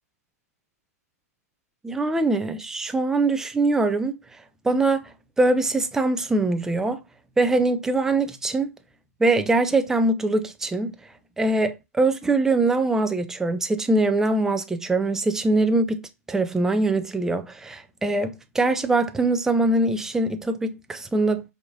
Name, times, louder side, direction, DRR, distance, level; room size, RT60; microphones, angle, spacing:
voice 1, 1.8-4.2 4.6-5.1 5.4-7.0 7.4-8.7 9.2-10.9 11.4-16.0 16.3-21.4, right 2 dB, 5° right, 0.3 m, -22 dB
4.5 x 2.6 x 2.5 m
hypercardioid pair, 130°, 9 cm